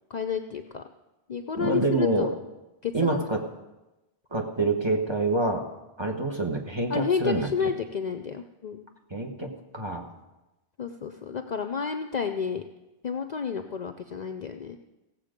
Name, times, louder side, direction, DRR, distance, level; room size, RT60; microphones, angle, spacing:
voice 1, 0.1-0.8 1.3-2.3 2.8-3.2 6.9-8.9 10.8-12.6 13.0-14.8, left 6 dB, 50° left, 7 dB, 0.6 m, -30 dB
voice 2, 1.6-2.3 2.9-3.4 4.3-5.6 6.0-7.7 9.1-10.0, right 2 dB, 25° right, 1 dB, 1.4 m, -26 dB
17.0 x 7.6 x 5.1 m, 1.0 s
omnidirectional pair, 1.1 m